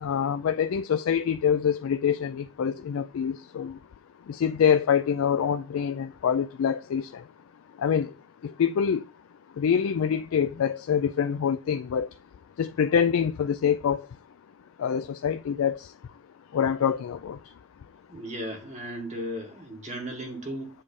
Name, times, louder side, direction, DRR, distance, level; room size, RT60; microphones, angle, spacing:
voice 1, 0.0-3.8 4.3-7.2 7.8-8.1 8.4-9.0 9.6-12.1 12.6-14.0 14.8-15.9 16.5-17.4, left 7 dB, 75° left, 0.3 m, -25 dB
voice 2, 18.1-20.7, equal, 35° right, 1.8 m, -36 dB
7.5 x 3.2 x 5.1 m
head